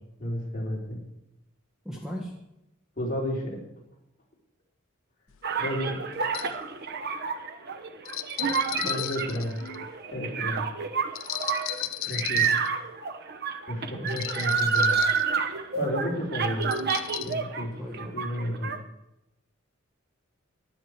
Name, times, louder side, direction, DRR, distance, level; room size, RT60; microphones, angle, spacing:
voice 1, 0.2-1.0 3.0-3.6 5.6-6.0 8.8-9.6 10.1-10.7 12.1-12.5 13.7-15.0 15.7-16.7 17.2-17.7 18.1-18.7, equal, 40° left, -3 dB, 3.7 m, -31 dB
voice 2, 1.8-2.3 10.2-10.7 12.1-12.6 17.8-18.1, equal, 5° right, -1 dB, 1.6 m, -39 dB
sound 1, 5.3-5.4 6.2-6.6 8.1-9.9 11.2-12.7 14.1-15.2 16.6-17.3, left 14 dB, 80° left, 0.5 m, -35 dB
sound 2, 5.4-17.6 17.9-18.8, right 5 dB, 50° right, 1.0 m, -29 dB
15.0 x 10.0 x 4.7 m, 0.86 s
head